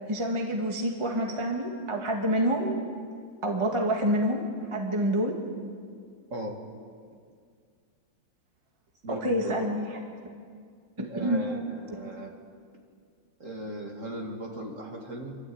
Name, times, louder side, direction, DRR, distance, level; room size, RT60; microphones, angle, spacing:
voice 1, 0.1-2.7 3.4-4.4 4.7-5.4 9.1-10.0 11.2-11.4, equal, 15° right, 1 dB, 1.8 m, -27 dB
voice 2, 9.0-9.6 11.1-12.3 13.4-15.4, right 1 dB, 40° right, 0 dB, 2.5 m, -37 dB
28.0 x 13.0 x 8.7 m, 2.1 s
omnidirectional pair, 2.2 m